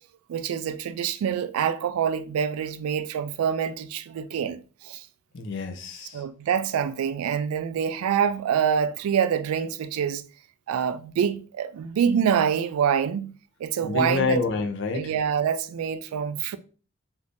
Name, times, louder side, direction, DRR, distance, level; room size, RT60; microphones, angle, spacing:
voice 1, 0.3-5.1 6.1-10.2 10.7-13.3 13.6-14.4 14.9-16.6, right 8 dB, 85° right, 0.3 m, -26 dB
voice 2, 5.3-6.2 13.8-15.1, left 4 dB, 55° left, 0.5 m, -27 dB
3.5 x 2.6 x 2.5 m
head